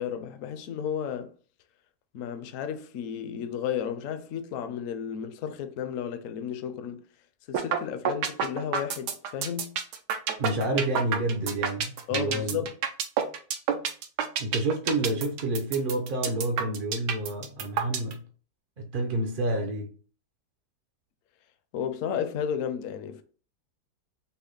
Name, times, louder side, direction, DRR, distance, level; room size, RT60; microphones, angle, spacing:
voice 1, 0.0-1.4 2.1-7.0 7.5-9.8 12.1-12.7 21.7-23.2, left 8 dB, 70° left, 0.8 m, -33 dB
sound 1, 7.5-7.8 8.1-18.1, right 7 dB, 90° right, 1.3 m, -28 dB
voice 2, 10.4-12.7 14.4-18.2 18.8-19.9, right 2 dB, 60° right, 0.5 m, -29 dB
5.8 x 2.1 x 3.9 m
omnidirectional pair, 1.7 m